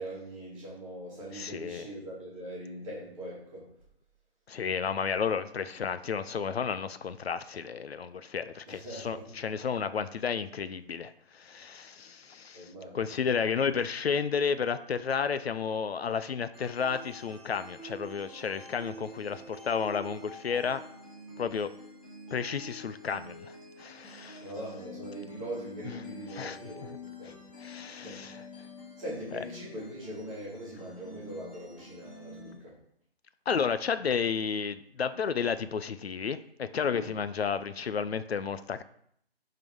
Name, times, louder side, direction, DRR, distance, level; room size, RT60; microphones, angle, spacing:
voice 1, 0.0-3.7 8.7-9.3 12.5-13.2 24.4-26.9 27.2-27.4 27.9-28.3 29.0-32.8 36.9-37.1, right 1 dB, ahead, -16 dB, 1.8 m, -41 dB
voice 2, 1.3-1.9 4.5-20.8 21.4-21.7 22.3-24.4 26.3-26.6 27.2-27.3 27.6-28.4 29.3-29.4 33.5-38.8, left 6 dB, 75° left, 13 dB, 0.6 m, -32 dB
sound 1, 16.5-32.5, left 1 dB, 35° left, 2.4 m, -47 dB
11.0 x 3.7 x 3.6 m, 0.68 s
hypercardioid pair, 170°, 32 cm